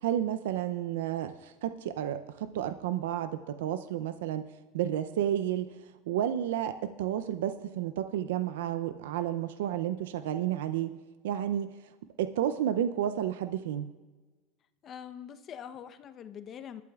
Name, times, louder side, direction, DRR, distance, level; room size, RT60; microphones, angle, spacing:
voice 1, 0.0-4.4 4.7-5.7 6.1-11.0 11.2-11.7 12.2-13.9, right 11 dB, 80° right, 10 dB, 0.5 m, -31 dB
voice 2, 14.8-16.8, left 8 dB, 40° left, 10 dB, 0.8 m, -44 dB
22.0 x 12.0 x 2.4 m, 1.3 s
supercardioid pair, 100°, 0 cm